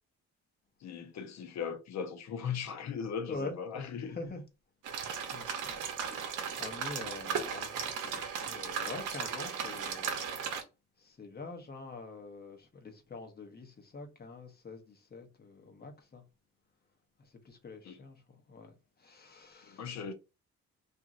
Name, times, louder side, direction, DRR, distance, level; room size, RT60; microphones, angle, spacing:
voice 1, 0.8-4.2 17.8-18.0 19.7-20.1, left 7 dB, 60° left, 0.7 m, -38 dB
voice 2, 3.3-4.4 5.3-6.3 6.6-10.2 11.0-16.2 17.2-19.9, left 3 dB, 30° left, 0.8 m, -46 dB
sound 1, 4.8-10.6, right 7 dB, 80° right, 0.7 m, -36 dB
2.9 x 2.5 x 2.4 m
cardioid pair, 90°, 30 cm